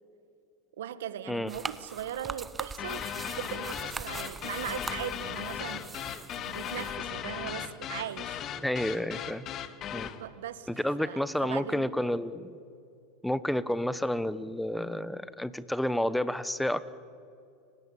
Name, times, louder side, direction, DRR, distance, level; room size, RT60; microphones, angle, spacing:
voice 1, 0.8-5.8 6.4-8.4 10.0-12.0, right 10 dB, 80° right, 14 dB, 1.3 m, -39 dB
sound 1, 1.5-7.0, right 4 dB, 20° right, 1.1 m, -42 dB
sound 2, 2.8-10.2, left 9 dB, 40° left, 1.7 m, -37 dB
voice 2, 8.6-9.4 9.9-10.1 10.7-12.5 13.2-16.8, left 1 dB, 5° left, 15 dB, 1.1 m, -30 dB
29.5 x 18.0 x 8.6 m, 2.5 s
hypercardioid pair, 105°, 0 cm